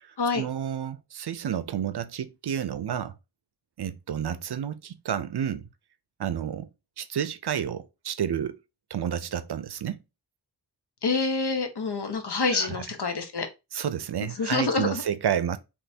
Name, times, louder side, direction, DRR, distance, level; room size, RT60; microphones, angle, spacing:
voice 1, 0.0-3.1 3.8-5.7 6.2-6.7 7.0-8.6 8.9-10.0 12.5-12.8 13.7-15.6, right 9 dB, 70° right, 0.5 m, -30 dB
voice 2, 11.0-13.5 14.2-15.0, left 4 dB, 70° left, 1.0 m, -27 dB
3.3 x 3.0 x 4.1 m
wide cardioid pair, 70°, 41 cm